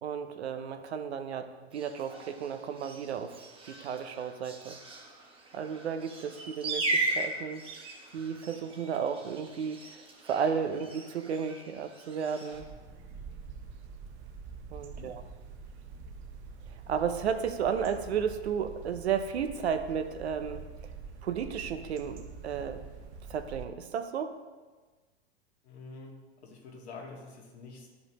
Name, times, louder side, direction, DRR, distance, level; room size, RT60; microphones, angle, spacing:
voice 1, 0.0-3.4 3.6-4.8 5.5-7.6 8.1-9.9 10.2-12.7 14.7-15.2 16.9-20.6 21.2-22.8 23.3-24.4, right 7 dB, 80° right, 8 dB, 0.8 m, -33 dB
sound 1, 1.7-12.6, right 2 dB, 15° right, 1.3 m, -38 dB
sound 2, 12.5-23.7, right 5 dB, 40° right, 0.9 m, -46 dB
voice 2, 14.9-15.2 25.6-27.9, left 3 dB, 80° left, -1 dB, 1.8 m, -47 dB
10.5 x 5.4 x 3.0 m, 1.3 s
hypercardioid pair, 110°, 32 cm